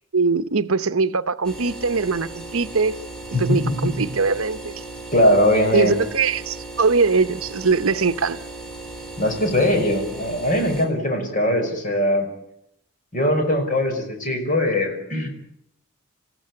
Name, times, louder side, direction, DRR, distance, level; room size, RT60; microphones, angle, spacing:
voice 1, 0.1-3.0 3.4-4.8 5.7-8.4, right 4 dB, 70° right, 0.8 m, -21 dB
sound 1, 1.4-10.9, right 2 dB, 5° left, 4.1 m, -37 dB
voice 2, 3.3-3.9 5.1-5.9 9.2-12.3 13.1-15.3, left 1 dB, 35° left, 5.5 m, -20 dB
28.5 x 15.0 x 9.7 m
head